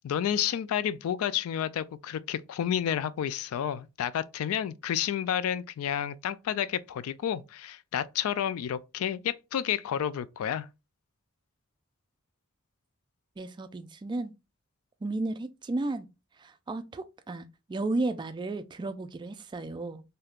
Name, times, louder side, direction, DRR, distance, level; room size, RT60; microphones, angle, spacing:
voice 1, 0.0-10.7, left 9 dB, 85° left, 0.3 m, -30 dB
voice 2, 13.4-14.3 15.0-16.1 16.4-20.0, right 2 dB, 20° right, 0.3 m, -33 dB
3.5 x 2.7 x 2.4 m
head